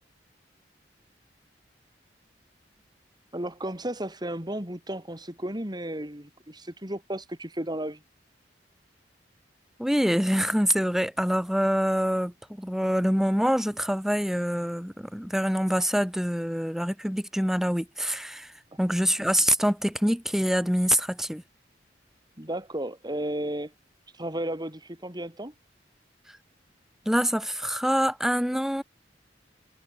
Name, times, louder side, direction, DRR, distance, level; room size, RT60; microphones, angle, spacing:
voice 1, 3.3-8.0 22.4-23.7 24.1-25.5, right 1 dB, 25° right, 4.9 m, -33 dB
voice 2, 9.8-21.4 26.3-26.4 27.1-28.8, equal, ahead, 1.9 m, -25 dB
head